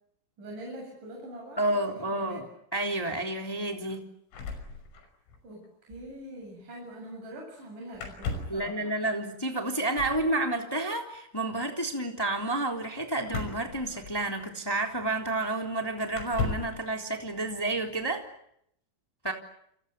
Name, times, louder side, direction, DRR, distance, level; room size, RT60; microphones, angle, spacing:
voice 1, 0.4-2.4 5.4-8.9, right 1 dB, 40° right, 0 dB, 9.2 m, -43 dB
voice 2, 1.6-2.5 2.7-4.0 8.5-18.3 19.2-19.3, right 2 dB, 5° left, 3 dB, 2.2 m, -30 dB
sound 1, 4.3-5.4 5.6-5.7 5.9-6.1 7.9-8.7 9.9-10.3 13.3-14.4 15.3-15.4 16.1-16.8, left 4 dB, 70° left, 8.1 m, -35 dB
29.5 x 28.5 x 6.8 m, 0.73 s
omnidirectional pair, 6.0 m